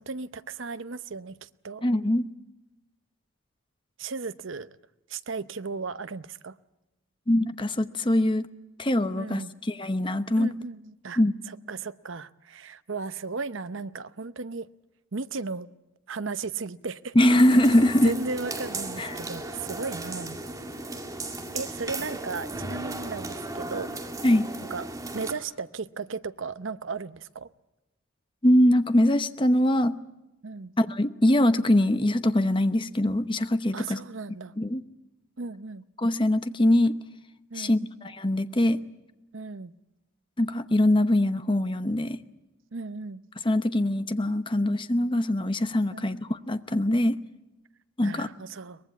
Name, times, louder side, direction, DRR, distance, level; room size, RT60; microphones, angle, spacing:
voice 1, 0.0-1.9 4.0-4.8 5.1-6.6 9.2-9.5 10.4-11.2 11.5-14.7 15.1-15.7 16.1-17.2 18.0-20.4 21.5-23.9 24.7-24.8 25.1-27.5 30.4-30.7 33.7-34.5 35.4-35.8 37.5-37.8 39.3-39.7 42.7-43.2 45.9-46.1 48.0-48.8, right 4 dB, 60° right, 14 dB, 0.8 m, -35 dB
voice 2, 1.8-2.3 7.3-8.5 8.8-10.5 11.2-11.3 17.1-18.1 19.0-19.2 24.2-24.5 28.4-29.9 30.8-34.0 34.6-34.8 36.0-37.0 37.5-38.8 40.4-42.2 43.4-47.2 48.0-48.3, left 1 dB, 20° left, 11 dB, 0.9 m, -23 dB
sound 1, 17.2-25.3, right 2 dB, 15° right, 2.1 m, -36 dB
23.5 x 20.5 x 8.4 m, 0.96 s
head